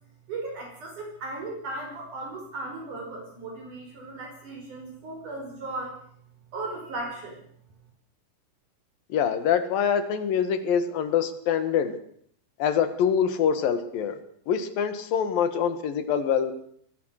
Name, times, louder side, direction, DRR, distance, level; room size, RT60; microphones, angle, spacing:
voice 1, 0.3-5.9 6.5-7.4, right 2 dB, 60° right, 1 dB, 6.8 m, -36 dB
voice 2, 9.1-12.0 12.6-14.2 14.5-16.5, left 8 dB, 85° left, 11 dB, 3.6 m, -25 dB
23.5 x 20.5 x 6.6 m, 0.65 s
omnidirectional pair, 3.9 m